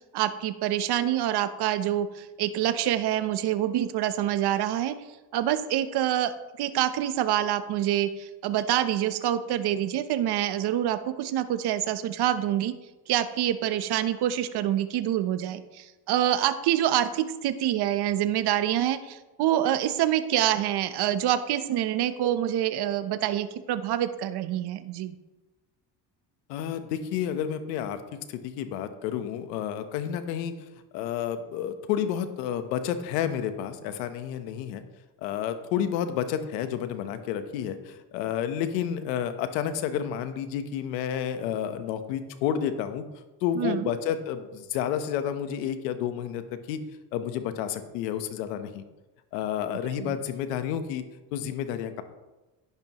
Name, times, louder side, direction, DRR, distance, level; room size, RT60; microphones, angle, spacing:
voice 1, 0.1-5.0 5.3-12.7 13.1-25.2 43.6-43.9 50.0-50.1, right 11 dB, 55° right, 11 dB, 0.9 m, -26 dB
voice 2, 26.5-28.0 28.3-30.5 30.9-34.8 35.2-43.0 43.4-46.8 47.1-48.8 49.3-51.0 51.3-52.0, left 9 dB, 90° left, 10 dB, 1.2 m, -30 dB
10.5 x 10.5 x 3.1 m, 1.1 s
supercardioid pair, 90°, 48 cm